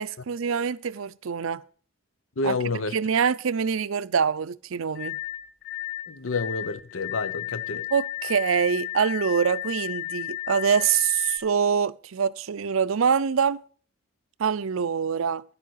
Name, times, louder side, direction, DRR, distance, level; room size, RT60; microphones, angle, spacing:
voice 1, 0.0-1.6 2.4-2.6 2.9-5.2 7.9-13.6 14.4-15.4, right 7 dB, 85° right, 0.5 m, -25 dB
voice 2, 2.4-2.9 6.1-7.8, left 3 dB, 80° left, 0.8 m, -29 dB
sound 1, 5.0-11.4, left 15 dB, 55° left, 1.4 m, -34 dB
11.0 x 8.5 x 6.5 m
head